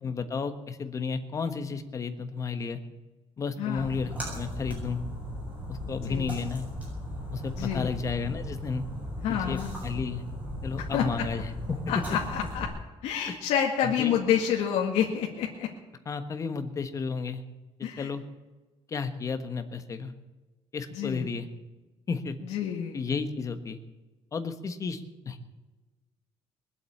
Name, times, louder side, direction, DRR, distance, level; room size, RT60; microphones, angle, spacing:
voice 1, 0.0-2.8 3.4-5.0 5.7-6.7 7.3-8.8 9.3-10.2 10.6-11.8 13.2-13.4 14.0-14.1 16.0-17.4 18.0-18.2 18.9-20.1 20.7-21.5 22.1-22.4 22.9-23.8 24.3-25.4, left 5 dB, 30° left, 9 dB, 1.3 m, -32 dB
voice 2, 3.6-3.9 6.1-6.3 7.6-8.0 9.2-9.7 10.9-11.0 11.9-12.7 13.0-15.7 17.8-18.1 20.9-21.3 22.5-23.0, left 9 dB, 85° left, 0 dB, 1.8 m, -28 dB
Splash splatter, 3.8-12.7, equal, 15° right, 7.2 m, -37 dB
21.5 x 7.9 x 8.5 m, 1.2 s
cardioid pair, 145°, 11 cm